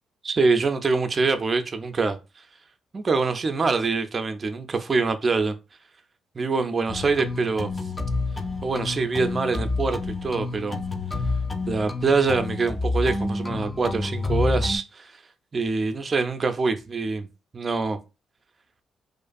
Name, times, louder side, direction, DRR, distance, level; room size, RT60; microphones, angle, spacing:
voice 1, 0.2-2.2 2.9-5.6 6.4-7.7 8.6-10.8 11.7-15.1 15.5-17.3 17.5-18.0, right 4 dB, 40° right, 0.4 m, -24 dB
sound 1, 6.9-14.8, left 3 dB, 25° left, 0.4 m, -29 dB
2.4 x 2.2 x 2.5 m
supercardioid pair, 60°, 0 cm